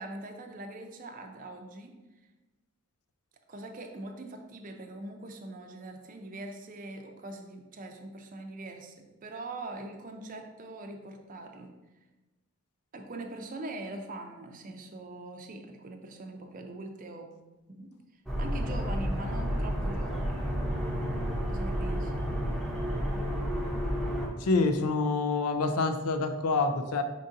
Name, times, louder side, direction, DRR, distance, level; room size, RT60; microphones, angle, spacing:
voice 1, 0.0-1.9 3.5-8.9 9.2-11.7 12.9-17.3 17.7-17.9 18.4-20.4 21.5-22.1, right 2 dB, 35° right, 3 dB, 0.5 m, -42 dB
sound 1, 18.3-24.3, equal, ahead, 0.7 m, -31 dB
voice 2, 24.4-27.0, left 3 dB, 75° left, 8 dB, 0.4 m, -27 dB
5.2 x 2.6 x 3.7 m, 1.1 s
head